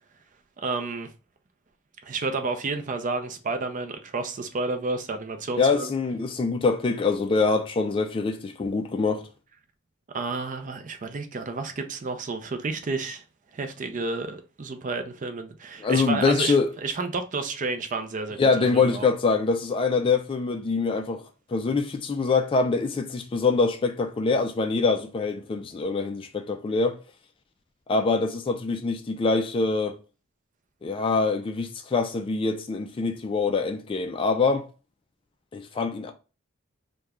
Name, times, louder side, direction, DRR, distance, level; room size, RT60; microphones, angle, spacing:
voice 1, 0.6-1.1 2.0-5.9 10.1-13.2 13.5-16.6 16.8-19.1, right 3 dB, 40° right, 0.5 m, -31 dB
voice 2, 5.6-9.3 15.8-16.7 18.4-21.2 21.5-27.0 27.9-30.0 30.8-34.7 35.5-36.1, left 4 dB, 25° left, 0.3 m, -24 dB
3.0 x 2.2 x 3.5 m
head